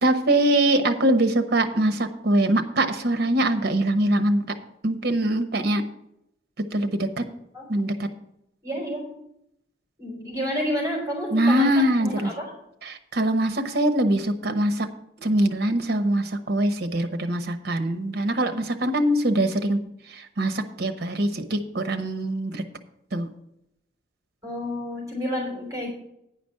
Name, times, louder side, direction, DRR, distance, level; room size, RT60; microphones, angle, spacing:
voice 1, 0.0-4.4 4.8-5.9 6.7-7.2 7.7-8.1 11.3-12.3 12.8-14.9 15.2-19.8 20.1-22.6 23.1-23.3, right 1 dB, 55° right, 8 dB, 0.9 m, -23 dB
voice 2, 8.6-9.2 10.0-12.5 24.4-25.9, equal, 20° right, -2 dB, 3.5 m, -30 dB
9.7 x 5.1 x 7.6 m, 0.79 s
head